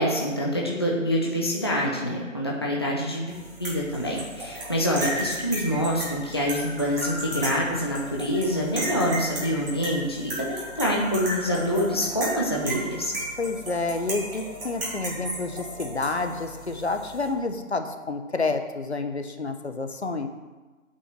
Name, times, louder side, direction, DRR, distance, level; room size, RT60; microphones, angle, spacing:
voice 1, 0.0-3.3 3.6-13.1, equal, 20° left, -3 dB, 0.8 m, -26 dB
sound 1, 3.3-17.3, right 1 dB, 45° right, 3.6 m, -35 dB
voice 2, 13.4-20.3, left 3 dB, 50° left, 7 dB, 1.0 m, -29 dB
8.5 x 5.5 x 7.4 m, 1.3 s
figure-of-eight pair, 165°, 41 cm